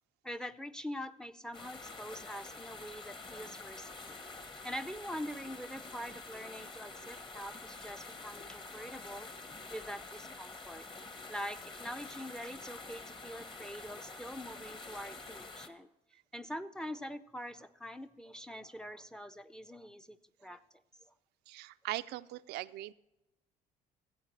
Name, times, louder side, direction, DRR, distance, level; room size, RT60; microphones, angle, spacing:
voice 1, 0.2-4.2 4.6-9.3 9.7-10.9 11.3-15.9 16.3-20.6 21.1-21.2, equal, 5° left, 12 dB, 0.5 m, -44 dB
sound 1, 1.5-15.7, left 3 dB, 30° left, 1.1 m, -47 dB
voice 2, 21.5-22.9, right 16 dB, 75° right, 12 dB, 0.4 m, -40 dB
15.0 x 8.2 x 3.2 m, 0.93 s
cardioid pair, 110°, 17 cm